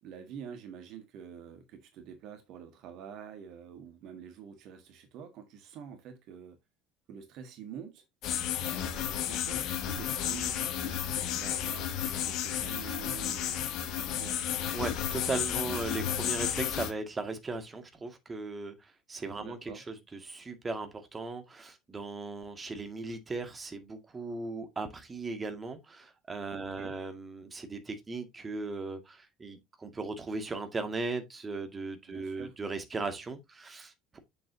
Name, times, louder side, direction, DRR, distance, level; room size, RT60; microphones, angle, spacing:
voice 1, 0.0-6.6 7.1-8.0 8.6-14.4 19.4-19.8 26.5-27.0 32.1-32.6, right 8 dB, 55° right, 1.6 m, -47 dB
sound 1, 8.2-16.9, left 10 dB, 55° left, 1.1 m, -32 dB
voice 2, 14.7-18.7 19.1-34.2, right 3 dB, 25° right, 2.0 m, -37 dB
7.7 x 6.9 x 2.8 m
figure-of-eight pair, 60°, 0 cm